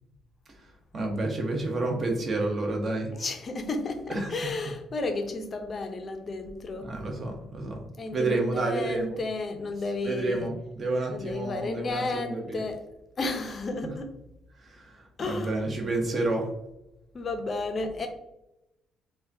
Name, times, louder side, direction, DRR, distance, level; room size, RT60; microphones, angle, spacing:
voice 1, 0.9-3.1 4.1-4.3 6.8-7.8 8.1-9.2 10.0-12.6 13.8-13.9 14.6-16.5, right 2 dB, 35° right, 1 dB, 0.8 m, -30 dB
voice 2, 3.1-6.9 8.0-10.6 11.1-12.8 13.2-14.2 15.2-15.7 17.1-18.1, left 3 dB, 35° left, 5 dB, 0.5 m, -32 dB
4.8 x 2.2 x 2.6 m, 0.88 s
cardioid pair, 140°, 0 cm